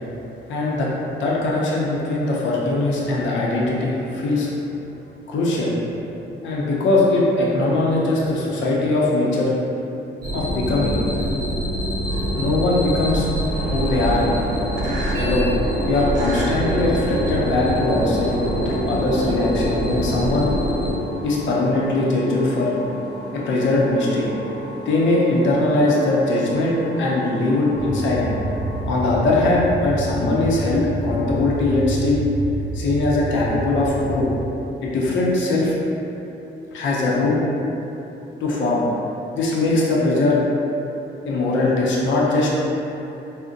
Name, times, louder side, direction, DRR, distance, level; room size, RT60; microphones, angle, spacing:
voice 1, 0.5-4.5 5.3-5.7 6.4-9.5 10.3-11.0 12.3-13.3 13.6-14.2 15.2-15.5 15.9-18.3 18.6-20.5 21.2-22.7 23.3-24.3 24.9-28.3 28.9-32.2 32.7-34.3 34.8-35.7 36.7-37.4 38.4-38.8 39.3-40.4 41.3-42.5, left 2 dB, 70° left, -5 dB, 0.6 m, -21 dB
sound 1, 10.2-20.9, equal, 55° right, 1.0 m, -24 dB
sound 2, 12.0-29.4, right 1 dB, 75° right, 0.5 m, -35 dB
sound 3, 27.7-34.4, right 2 dB, 15° right, 0.5 m, -28 dB
3.8 x 2.1 x 2.5 m, 3.0 s
cardioid pair, 90°, 20 cm